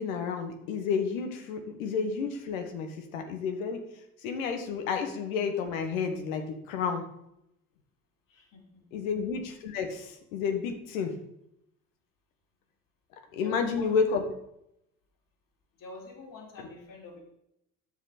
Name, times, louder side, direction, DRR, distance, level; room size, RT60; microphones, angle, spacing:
voice 1, 0.0-3.9 4.2-7.0 8.9-11.1 13.3-14.2, left 5 dB, 75° left, 5 dB, 1.5 m, -31 dB
voice 2, 8.3-8.9 13.3-14.0 15.8-17.2, left 3 dB, 50° left, 1 dB, 3.0 m, -47 dB
10.0 x 7.6 x 4.2 m, 0.81 s
hypercardioid pair, 55°, 41 cm